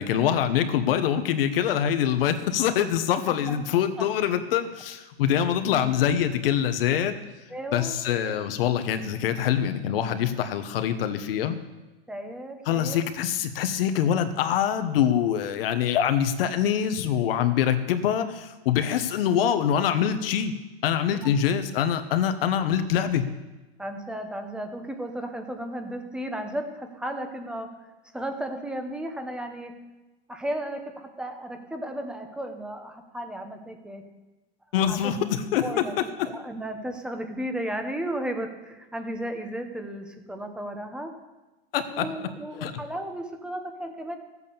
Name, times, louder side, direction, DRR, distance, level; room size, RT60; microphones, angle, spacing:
voice 1, 0.0-7.1 7.7-11.6 12.6-20.5 20.8-23.3 34.7-35.6 41.7-42.1 42.6-42.7, left 9 dB, 60° left, 9 dB, 1.3 m, -24 dB
voice 2, 7.5-7.9 8.3-8.4 12.1-13.0 21.1-21.3 23.8-27.7 28.1-29.7 30.3-34.0 34.9-35.0 35.6-35.9 36.3-41.1 41.9-44.2, right 1 dB, 5° right, 5 dB, 1.0 m, -34 dB
14.5 x 8.5 x 7.1 m, 1.1 s
supercardioid pair, 160°, 32 cm